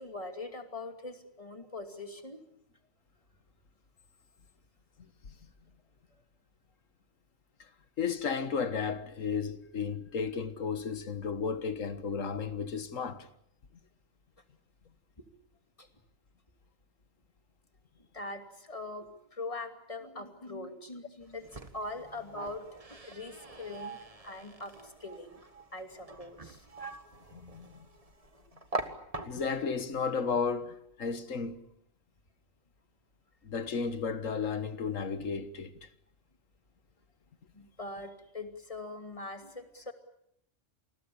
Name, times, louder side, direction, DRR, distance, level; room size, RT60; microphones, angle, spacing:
voice 1, 0.0-2.4 15.2-15.3 15.8-15.9 18.1-21.5 21.7-22.6 22.9-24.0 24.2-25.4 25.7-26.6 37.5-39.9, left 2 dB, 25° left, 2.6 m, -42 dB
voice 2, 8.0-13.3 27.3-27.8 29.3-31.6 33.4-35.9, left 5 dB, 85° left, 1.9 m, -33 dB
sound 1, 21.2-29.7, right 2 dB, 30° right, 1.7 m, -43 dB
28.0 x 20.0 x 8.7 m
omnidirectional pair, 1.3 m